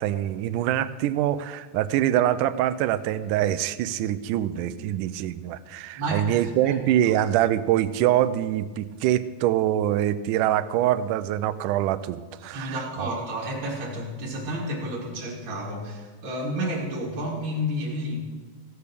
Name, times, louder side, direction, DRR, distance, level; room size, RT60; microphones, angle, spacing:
voice 1, 0.0-13.1, right 12 dB, 80° right, 14 dB, 2.0 m, -24 dB
voice 2, 6.0-6.8 7.0-7.1 12.4-18.2, equal, 45° right, -4 dB, 1.8 m, -31 dB
15.5 x 6.8 x 6.8 m, 1.5 s
omnidirectional pair, 3.9 m